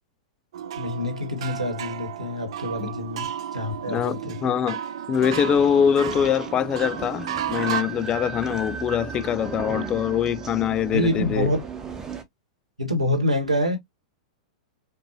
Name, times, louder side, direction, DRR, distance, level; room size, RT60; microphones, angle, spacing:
sound 1, 0.5-7.8, right 9 dB, 60° right, 0.5 m, -33 dB
voice 1, 0.8-4.4 10.9-11.6 12.8-13.8, left 1 dB, 90° right, 1.7 m, -26 dB
voice 2, 3.9-4.8 5.1-11.5, left 8 dB, 25° left, 0.3 m, -23 dB
sound 2, 5.2-12.2, right 6 dB, 15° right, 1.0 m, -35 dB
5.3 x 2.6 x 2.5 m
figure-of-eight pair, 100°, 3 cm